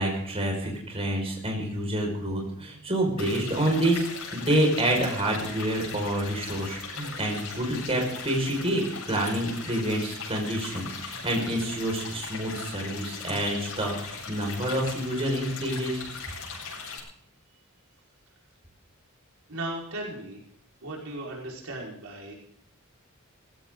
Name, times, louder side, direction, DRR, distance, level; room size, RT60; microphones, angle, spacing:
voice 1, 0.0-4.1 4.3-16.0, right 1 dB, 30° right, 0 dB, 5.5 m, -28 dB
sound 1, 3.2-17.0, left 4 dB, 85° left, 7.9 m, -39 dB
voice 2, 19.5-20.4 20.8-22.3, right 1 dB, 80° right, -2 dB, 5.1 m, -36 dB
19.5 x 16.5 x 3.9 m, 0.64 s
head